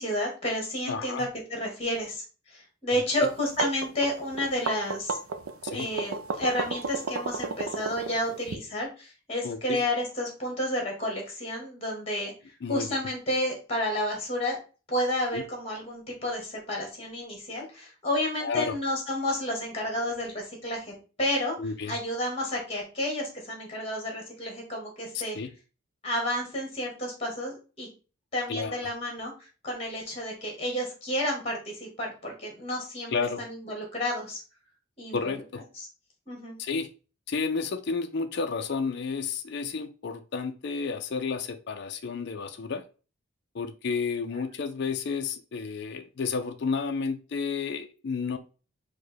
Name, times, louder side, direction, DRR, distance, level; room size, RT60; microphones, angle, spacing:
voice 1, 0.0-5.2 5.7-12.3 12.7-14.6 14.9-21.5 21.9-25.4 26.0-27.9 28.3-33.1 33.4-34.4 35.0-35.3 35.8-35.9 36.3-36.6, left 1 dB, 30° left, 1 dB, 1.6 m, -31 dB
voice 2, 0.9-1.3 2.9-3.3 5.6-5.9 9.4-9.8 12.6-12.9 15.3-15.4 18.4-18.7 21.6-22.0 25.3-25.5 28.5-28.8 33.1-33.4 35.1-35.6 36.6-36.9 37.3-42.8 43.5-48.4, left 5 dB, 55° left, 7 dB, 0.4 m, -31 dB
sound 1, 3.3-8.5, right 4 dB, 85° right, 0.5 m, -32 dB
4.9 x 2.2 x 4.2 m, 0.34 s
head